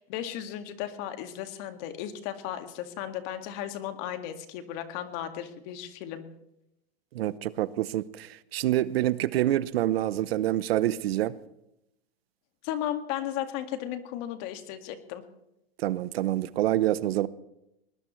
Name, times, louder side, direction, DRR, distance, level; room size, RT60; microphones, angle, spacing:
voice 1, 0.0-6.2 12.6-15.2, left 11 dB, 50° left, 2.1 m, -35 dB
voice 2, 7.1-11.3 15.8-17.3, right 13 dB, 75° right, 0.9 m, -27 dB
21.5 x 19.5 x 3.2 m
hypercardioid pair, 120°, 31 cm